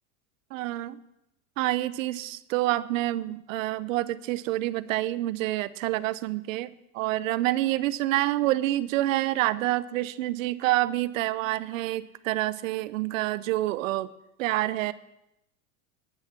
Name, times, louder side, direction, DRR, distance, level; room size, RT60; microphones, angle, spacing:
voice 1, 0.5-1.0 1.6-14.1 14.4-14.9, right 16 dB, 80° right, 17 dB, 0.7 m, -27 dB
18.5 x 6.5 x 5.9 m, 0.87 s
supercardioid pair, 105°, 39 cm